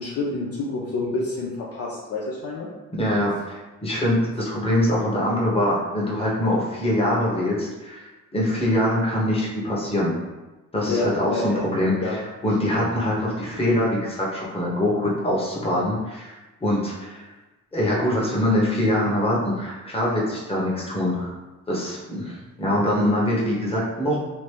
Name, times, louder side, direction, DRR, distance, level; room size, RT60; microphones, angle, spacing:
voice 1, 0.0-2.7 10.9-12.2, left 2 dB, 50° left, -4 dB, 0.6 m, -28 dB
voice 2, 2.9-10.1 10.7-16.3 16.6-17.3 17.7-21.3 21.7-24.2, left 1 dB, 20° left, -5 dB, 1.1 m, -23 dB
3.0 x 2.6 x 3.3 m, 1.1 s
cardioid pair, 90°, 30 cm